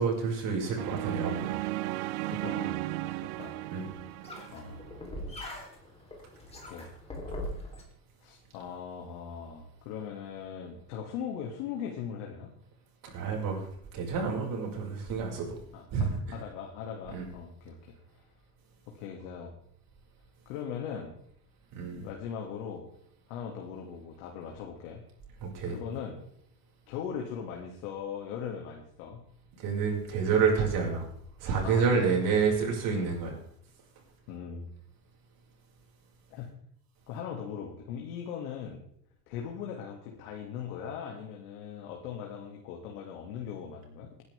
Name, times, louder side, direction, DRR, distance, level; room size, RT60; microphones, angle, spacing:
voice 1, 0.0-1.5 2.2-2.3 3.7-3.9 13.1-13.7 13.9-15.6 15.9-16.2 17.1-17.2 21.7-22.1 25.4-25.8 29.6-31.0 31.4-33.4, right 5 dB, 45° right, -1 dB, 5.7 m, -28 dB
sound 1, 0.8-5.0, right 17 dB, 60° right, 0.7 m, -35 dB
voice 2, 2.3-3.6 4.5-4.9 6.6-6.9 8.2-12.5 15.7-17.9 18.9-19.5 20.5-21.2 22.0-22.9 23.3-25.0 25.7-26.2 26.9-29.2 31.6-32.1 32.9-33.1 34.3-34.7 36.3-36.5 37.1-38.8 39.3-44.1, left 7 dB, 65° left, 1 dB, 2.4 m, -39 dB
sound 2, 3.4-7.8, left 1 dB, 15° left, 3.6 m, -41 dB
19.0 x 11.0 x 3.5 m, 0.67 s
supercardioid pair, 125°, 45 cm